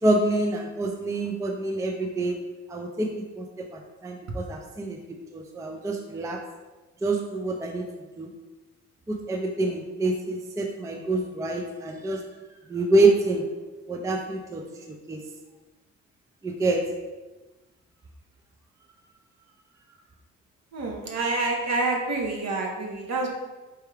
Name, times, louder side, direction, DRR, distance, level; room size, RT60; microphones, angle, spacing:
voice 1, 0.0-2.4 2.7-3.1 3.4-5.0 5.3-6.4 7.0-7.9 8.2-8.3 9.1-12.2 12.7-13.4 13.9-15.2 16.4-16.9, right 2 dB, 10° right, 3 dB, 0.3 m, -26 dB
voice 2, 20.7-23.3, right 3 dB, 60° right, 1 dB, 0.9 m, -27 dB
4.6 x 2.3 x 3.2 m, 1.2 s
cardioid pair, 90°, 30 cm